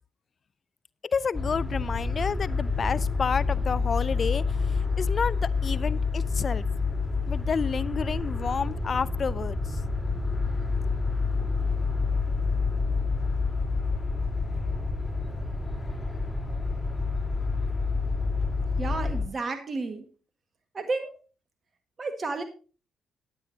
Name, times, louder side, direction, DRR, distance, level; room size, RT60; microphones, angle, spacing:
voice 1, 1.0-6.6 7.3-9.6, left 6 dB, 50° left, 0.4 m, -30 dB
sound 1, 1.3-19.2, left 4 dB, 20° left, 3.6 m, -28 dB
voice 2, 18.8-20.0 20.7-21.1 22.0-22.4, right 3 dB, 45° right, 1.6 m, -31 dB
14.5 x 9.6 x 2.8 m
hypercardioid pair, 45°, 0 cm